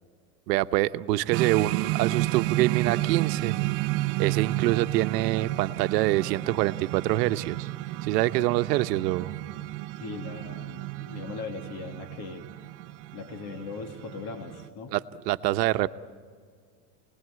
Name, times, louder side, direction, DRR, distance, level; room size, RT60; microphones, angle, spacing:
voice 1, 0.5-3.6 4.2-7.7 8.0-9.3 14.9-15.0 15.3-15.9, right 16 dB, 90° right, 12 dB, 0.9 m, -25 dB
sound 1, 1.3-14.7, right 18 dB, 40° right, 0.7 m, -31 dB
voice 2, 10.0-12.7 13.1-15.0, left 4 dB, 50° left, 4 dB, 2.4 m, -39 dB
27.0 x 20.0 x 9.4 m, 2.1 s
supercardioid pair, 150°, 47 cm